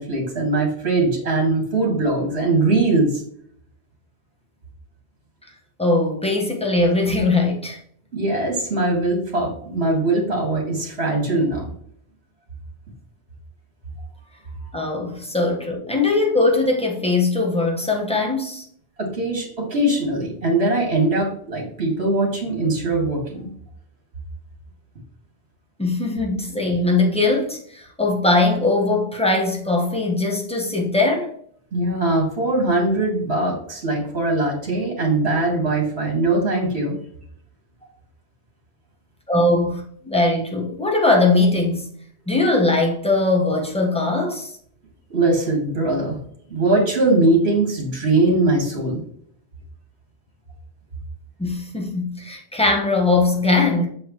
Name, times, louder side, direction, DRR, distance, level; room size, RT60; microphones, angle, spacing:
voice 1, 0.0-3.2 8.1-11.7 19.0-23.5 31.7-37.0 45.1-46.2 46.5-49.0, right 2 dB, 70° right, 2.5 m, -21 dB
voice 2, 5.8-7.8 14.7-18.6 25.8-31.3 39.3-41.9 42.3-44.5 51.4-53.9, left 2 dB, 5° left, 1.4 m, -20 dB
6.8 x 6.5 x 3.1 m
omnidirectional pair, 1.1 m